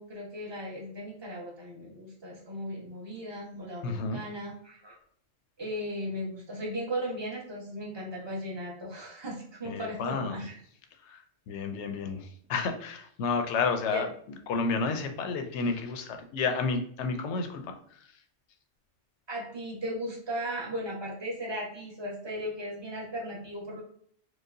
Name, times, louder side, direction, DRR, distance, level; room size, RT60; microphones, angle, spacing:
voice 1, 0.0-5.0 5.6-10.6 13.9-14.0 19.3-23.8, equal, 25° right, -3 dB, 0.9 m, -37 dB
voice 2, 3.8-4.2 9.6-10.5 11.0-14.1 14.5-18.1, left 4 dB, 75° left, 6 dB, 0.8 m, -31 dB
4.7 x 2.2 x 2.6 m, 0.62 s
omnidirectional pair, 1.2 m